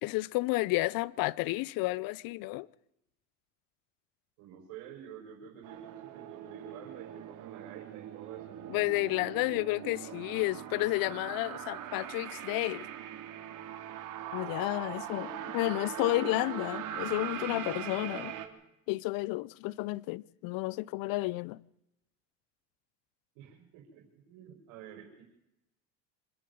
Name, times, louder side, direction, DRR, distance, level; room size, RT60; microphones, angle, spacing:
voice 1, 0.0-2.7 8.7-12.9 14.3-15.3 15.5-18.3 18.9-21.6, left 21 dB, 60° left, 0.7 m, -31 dB
voice 2, 4.4-9.3 14.9-15.5 23.3-25.2, right 8 dB, 75° right, 4.8 m, -49 dB
sound 1, 5.6-18.5, right 10 dB, 55° right, 3.1 m, -41 dB
25.0 x 11.0 x 9.5 m
supercardioid pair, 85°, 38 cm